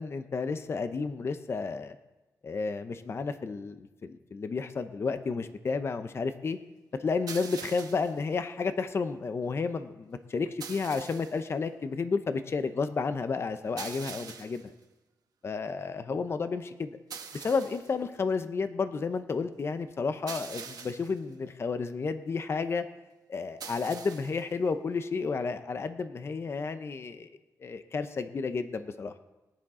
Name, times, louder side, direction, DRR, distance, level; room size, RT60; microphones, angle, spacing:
voice 1, 0.0-2.0 2.4-6.6 7.0-14.6 15.4-16.9 17.3-22.8 23.3-27.3 27.6-29.1, left 4 dB, 40° left, 10 dB, 0.6 m, -31 dB
sound 1, 7.3-8.2 10.6-11.4 13.8-14.7 17.1-17.9 20.3-21.2 23.6-24.4, right 6 dB, 75° right, 1.1 m, -43 dB
19.5 x 10.5 x 3.7 m, 1.1 s
wide cardioid pair, 130°, 7 cm